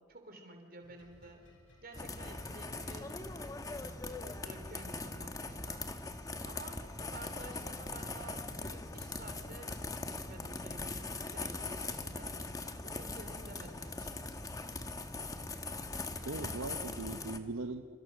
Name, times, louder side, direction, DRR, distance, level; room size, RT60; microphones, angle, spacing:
voice 1, 0.0-1.4 1.8-3.1 3.6-3.9 4.4-6.1 6.4-9.7 10.1-12.3 12.8-14.1, right 2 dB, 45° right, 5 dB, 3.6 m, -52 dB
sound 1, 0.8-8.5, equal, 65° left, 5.3 m, -60 dB
sound 2, 1.9-17.4, left 3 dB, 15° left, 1.2 m, -41 dB
voice 2, 16.3-18.0, right 3 dB, 80° right, 7 dB, 0.9 m, -40 dB
28.0 x 27.5 x 6.3 m, 2.3 s
head